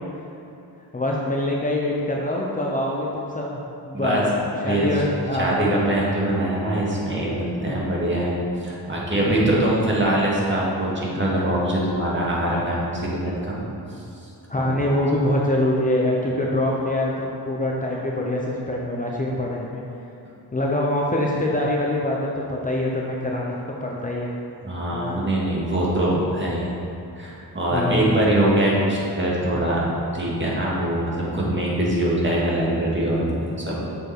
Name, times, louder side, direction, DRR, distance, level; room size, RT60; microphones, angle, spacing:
voice 1, 0.9-3.6 3.8-4.3 4.6-5.7 7.6-7.8 9.2-9.5 14.5-19.8 20.5-24.4 24.9-25.2 27.7-28.1 31.3-31.4, left 1 dB, 20° left, -3 dB, 0.9 m, -24 dB
voice 2, 3.9-4.2 4.6-5.0 5.4-8.3 8.6-13.6 13.9-14.0 14.6-14.8 24.6-26.7 27.1-33.9, right 1 dB, 30° right, -5 dB, 2.0 m, -23 dB
7.6 x 6.9 x 4.7 m, 2.8 s
cardioid pair, 105°, 41 cm